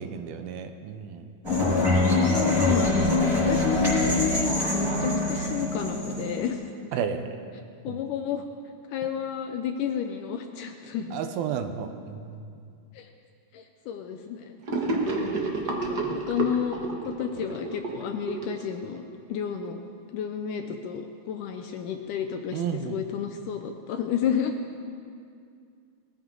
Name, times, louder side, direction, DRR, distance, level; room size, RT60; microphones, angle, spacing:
voice 1, 0.0-1.3 6.9-7.4 7.9-8.0 11.1-12.4 22.5-23.0, right 7 dB, 90° right, 7 dB, 2.7 m, -32 dB
sound 1, 1.4-6.5, left 2 dB, 5° right, 4.8 m, -24 dB
voice 2, 1.7-6.6 7.8-8.4 8.9-11.2 12.9-13.1 13.5-14.6 15.2-15.4 15.7-16.8 17.1-19.0 19.3-19.8 20.1-24.6, left 8 dB, 75° left, 5 dB, 1.9 m, -31 dB
Gurgling / Sink (filling or washing), 14.7-19.1, right 3 dB, 60° right, 1.0 m, -30 dB
20.5 x 14.5 x 3.9 m, 2.3 s
omnidirectional pair, 4.2 m